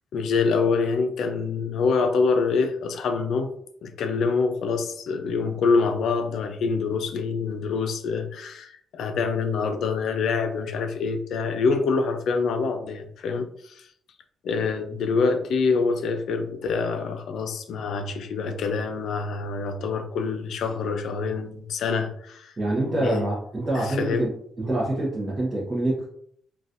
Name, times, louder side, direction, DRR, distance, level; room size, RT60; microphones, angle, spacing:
voice 1, 0.1-3.5 3.8-13.9 14.4-22.5 23.0-23.2 23.7-24.3, left 4 dB, 70° left, 0.4 m, -25 dB
voice 2, 22.6-24.3 24.6-26.1, right 1 dB, 25° right, 0.8 m, -26 dB
3.9 x 2.3 x 2.5 m
cardioid pair, 160°, 0 cm